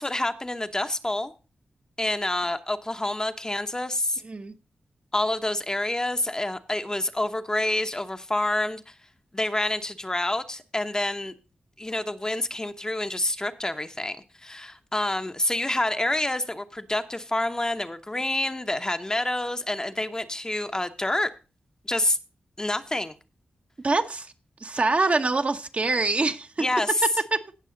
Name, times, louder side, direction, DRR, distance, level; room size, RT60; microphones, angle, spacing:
voice 1, 0.0-1.3 2.0-4.2 5.1-8.9 9.3-11.3 11.8-14.2 14.4-21.3 21.8-22.2 22.6-23.1 26.6-26.9, left 1 dB, 20° left, 8 dB, 0.9 m, -27 dB
voice 2, 4.2-4.5 23.8-24.3 24.6-26.6 27.3-27.4, right 3 dB, 40° right, 7 dB, 1.1 m, -25 dB
17.0 x 6.2 x 3.9 m, 0.32 s
cardioid pair, 60°, 3 cm